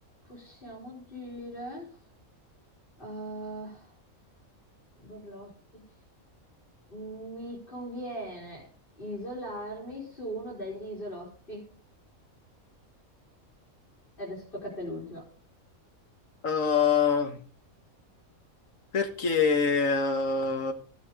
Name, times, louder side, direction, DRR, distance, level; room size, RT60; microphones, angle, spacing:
voice 1, 0.2-2.0 3.0-3.9 5.0-5.8 6.9-8.7 9.0-11.7 14.2-15.3, equal, 40° left, -4 dB, 4.0 m, -39 dB
voice 2, 16.4-17.4 18.9-20.7, left 5 dB, 70° left, 6 dB, 1.9 m, -25 dB
16.0 x 8.2 x 3.7 m, 0.41 s
omnidirectional pair, 1.4 m